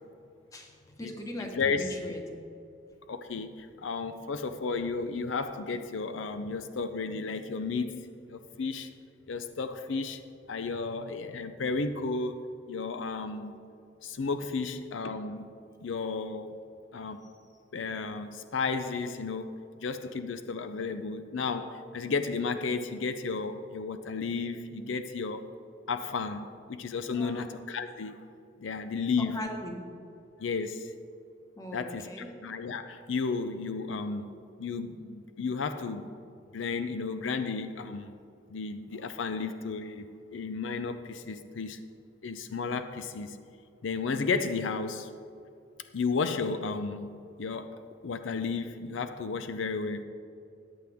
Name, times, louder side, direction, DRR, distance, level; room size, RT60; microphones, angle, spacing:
voice 1, 1.0-2.2 27.1-27.6 29.3-29.8 31.6-32.3, equal, 20° left, 1 dB, 1.3 m, -39 dB
voice 2, 1.5-1.9 3.1-8.9 9.3-10.2 10.5-13.5 14.0-15.5 15.8-16.6 16.9-17.2 17.7-25.5 25.9-28.2 28.6-29.4 30.4-30.9 31.7-36.1 36.5-38.1 38.5-41.8 42.2-43.4 43.8-45.1 45.9-50.0, left 4 dB, 85° left, 9 dB, 0.5 m, -33 dB
14.5 x 9.6 x 3.5 m, 2.6 s
head